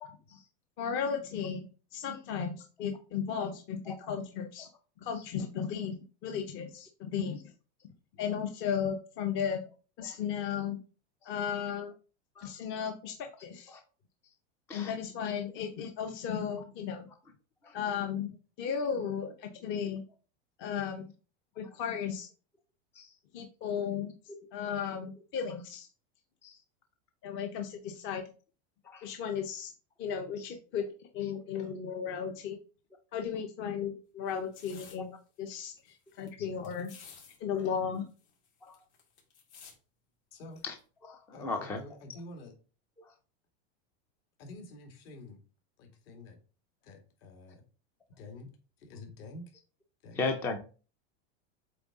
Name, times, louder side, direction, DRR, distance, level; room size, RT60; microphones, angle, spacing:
voice 1, 0.0-0.4 3.9-4.0 4.6-4.7 10.0-10.2 12.4-12.5 13.7-13.8 14.7-14.9 17.6-17.7 20.6-20.7 22.9-23.1 24.3-24.4 26.4-26.6 28.8-29.1 30.4-30.5 38.6-38.7 40.6-40.7 41.0-42.0 43.0-43.1 50.1-50.6, left 3 dB, 5° left, 5 dB, 0.3 m, -37 dB
voice 2, 0.8-4.7 5.0-7.4 8.2-9.6 10.0-10.8 11.2-11.9 12.4-13.7 14.7-17.1 17.7-20.0 20.6-21.1 21.6-22.3 23.3-24.1 24.5-25.9 27.2-28.2 29.0-29.7 30.0-30.8 31.1-32.6 33.1-36.9 37.4-38.1, left 7 dB, 35° left, 5 dB, 0.7 m, -35 dB
sound 1, 34.3-35.0 35.5-35.6 35.8-36.3 36.6-37.4 37.6-37.7 37.9-39.7 40.6-40.8, left 6 dB, 90° left, 2.8 m, -53 dB
voice 3, 41.3-42.5 44.4-45.4 45.8-46.4 46.8-47.6 48.2-48.5 48.8-49.4 50.0-50.2, left 2 dB, 60° left, 3 dB, 2.2 m, -48 dB
7.8 x 3.6 x 3.6 m, 0.36 s
supercardioid pair, 160°, 33 cm